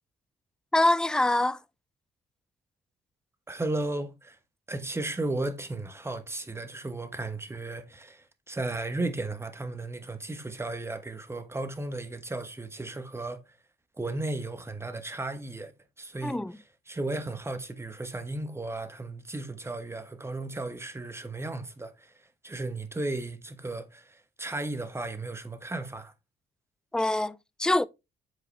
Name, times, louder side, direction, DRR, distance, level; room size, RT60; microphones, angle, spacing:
voice 1, 0.7-1.6 16.2-16.6 26.9-27.9, left 1 dB, 5° left, 0.3 m, -25 dB
voice 2, 3.5-4.4 4.7-13.6 14.0-15.7 16.0-16.4 16.9-22.1 22.4-26.1, right 2 dB, 10° right, 1.1 m, -35 dB
7.8 x 4.9 x 3.2 m
cardioid pair, 90°, 20 cm